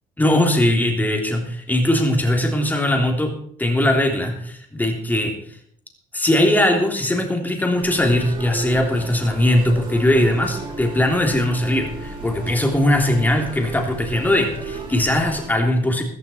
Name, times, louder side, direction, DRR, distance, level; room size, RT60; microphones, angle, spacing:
voice 1, 0.2-3.3 3.6-5.3 6.1-16.0, left 1 dB, 10° left, 2 dB, 3.2 m, -20 dB
sound 1, 7.8-15.5, right 3 dB, 30° right, 7.6 m, -34 dB
14.5 x 14.0 x 4.5 m, 0.63 s
cardioid pair, 110°, 17 cm